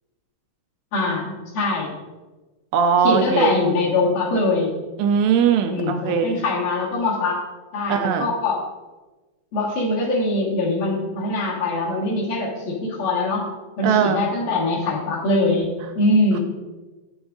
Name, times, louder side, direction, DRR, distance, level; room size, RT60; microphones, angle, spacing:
voice 1, 0.9-1.9 3.0-4.7 5.7-7.4 7.7-8.6 9.5-13.4 13.8-15.7 16.0-16.4, left 2 dB, 60° left, -4 dB, 2.7 m, -22 dB
voice 2, 2.7-3.5 5.0-6.4 7.9-8.3 13.8-14.2, right 7 dB, 85° right, 7 dB, 2.6 m, -19 dB
8.9 x 7.0 x 3.8 m, 1.2 s
omnidirectional pair, 5.2 m